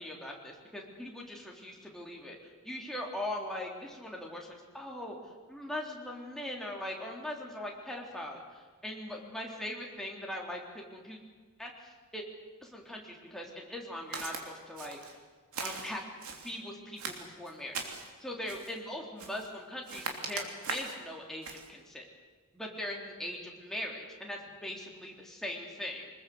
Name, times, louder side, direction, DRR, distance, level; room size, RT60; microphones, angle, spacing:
voice 1, 0.0-2.4 2.6-11.2 11.6-12.3 12.6-15.0 15.6-16.0 16.3-17.8 18.2-22.0 22.5-26.1, left 1 dB, ahead, -1 dB, 3.7 m, -40 dB
Walk footsteps, 14.1-14.4 14.8-15.2 15.5-16.5 17.0-18.1 18.5-18.8 19.2-19.5 19.9-21.0 21.4-21.7, right 4 dB, 70° right, 3.2 m, -40 dB
25.0 x 20.5 x 8.0 m, 1.5 s
head